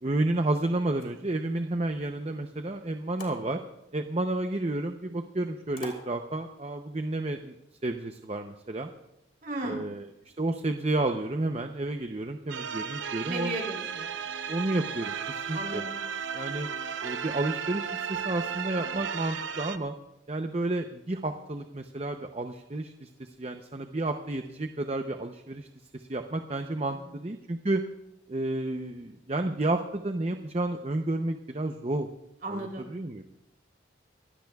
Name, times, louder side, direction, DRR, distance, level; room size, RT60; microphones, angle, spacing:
voice 1, 0.0-3.6 3.9-7.5 7.8-8.9 9.6-10.0 10.4-13.5 14.5-15.8 16.3-16.7 17.0-19.9 20.3-23.1 23.4-25.7 25.9-27.8 28.3-32.1 32.5-33.2, right 2 dB, 35° right, 6 dB, 0.7 m, -31 dB
sound 1, 0.7-6.7, left 2 dB, 45° left, 3.2 m, -51 dB
voice 2, 9.4-9.9 13.2-14.1 15.5-15.9 26.9-27.0 32.4-32.9, right 1 dB, 50° right, 1 dB, 3.4 m, -35 dB
sound 2, 12.5-19.8, right 7 dB, 75° right, 0.8 m, -35 dB
25.0 x 17.0 x 2.4 m, 0.88 s
head